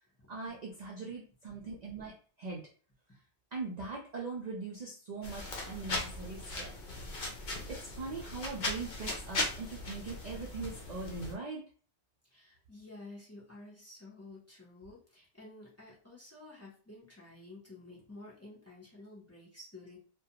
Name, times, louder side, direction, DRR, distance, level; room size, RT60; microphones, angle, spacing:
voice 1, 0.3-2.6 3.5-6.7 7.2-7.4 7.7-11.6, right 4 dB, 55° right, -2 dB, 0.5 m, -41 dB
sound 1, 5.2-11.3, left 2 dB, 55° left, 0.8 m, -38 dB
voice 2, 12.3-20.0, left 2 dB, 15° left, -5 dB, 0.7 m, -51 dB
2.4 x 2.2 x 2.8 m, 0.42 s
omnidirectional pair, 1.1 m